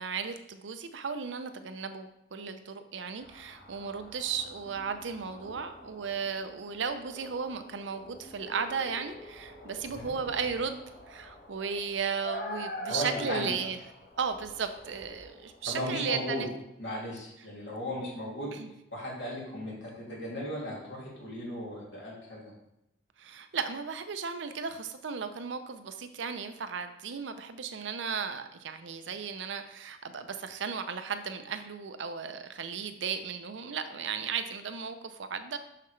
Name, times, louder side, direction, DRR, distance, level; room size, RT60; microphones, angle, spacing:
voice 1, 0.0-13.8 14.2-16.5 18.5-18.7 23.2-35.6, right 6 dB, 80° right, 9 dB, 0.6 m, -35 dB
sound 1, 3.2-15.7, left 1 dB, 60° left, 1.3 m, -45 dB
voice 2, 12.9-13.5 15.6-16.4 16.8-18.5 18.9-22.4, left 1 dB, 85° left, -5 dB, 2.6 m, -36 dB
6.5 x 5.8 x 3.2 m, 0.88 s
head